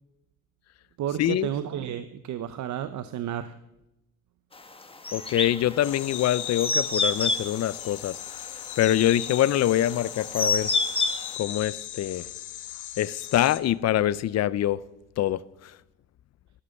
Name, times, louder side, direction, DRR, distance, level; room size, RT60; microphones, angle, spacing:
voice 1, 1.0-3.6, right 10 dB, 70° right, 0.8 m, -32 dB
sound 1, 5.0-11.3, left 3 dB, 20° left, 1.5 m, -28 dB
voice 2, 5.1-8.2 8.8-10.7 11.4-12.2 13.0-14.8 15.2-15.4, left 12 dB, 60° left, 0.6 m, -24 dB
sound 2, 5.8-13.6, left 12 dB, 80° left, 1.0 m, -38 dB
13.0 x 11.5 x 7.0 m
cardioid pair, 90°, 30 cm